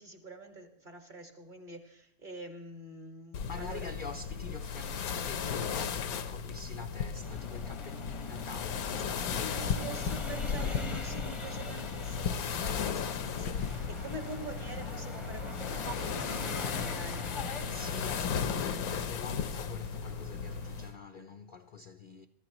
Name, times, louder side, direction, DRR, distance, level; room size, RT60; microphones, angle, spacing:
voice 1, 0.0-4.0 9.4-17.3, right 2 dB, 35° right, 1.8 m, -46 dB
sound 1, 3.3-20.9, left 6 dB, 85° left, 1.3 m, -35 dB
voice 2, 3.4-9.8 17.7-22.3, left 5 dB, 55° left, 0.6 m, -46 dB
sound 2, 7.2-18.6, left 3 dB, 25° left, 0.8 m, -42 dB
Engine starting, 12.7-20.9, right 1 dB, 55° right, 7.0 m, -54 dB
23.5 x 14.0 x 3.0 m
omnidirectional pair, 1.5 m